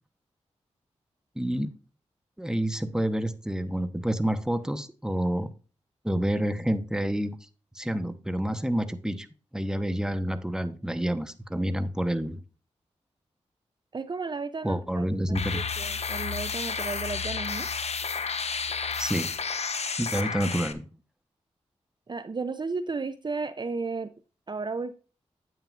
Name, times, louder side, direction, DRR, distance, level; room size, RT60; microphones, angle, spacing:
voice 1, 1.4-1.7 2.4-5.5 6.0-7.4 7.7-9.3 9.5-12.4 14.6-15.6 19.0-19.3 20.0-20.8, right 1 dB, 5° right, 11 dB, 1.1 m, -28 dB
voice 2, 13.9-17.7 22.1-24.1 24.5-24.9, right 4 dB, 40° right, 12 dB, 0.6 m, -34 dB
sound 1, 15.3-20.7, left 5 dB, 60° left, 0.9 m, -31 dB
9.2 x 8.7 x 2.5 m, 0.36 s
cardioid pair, 50°, 12 cm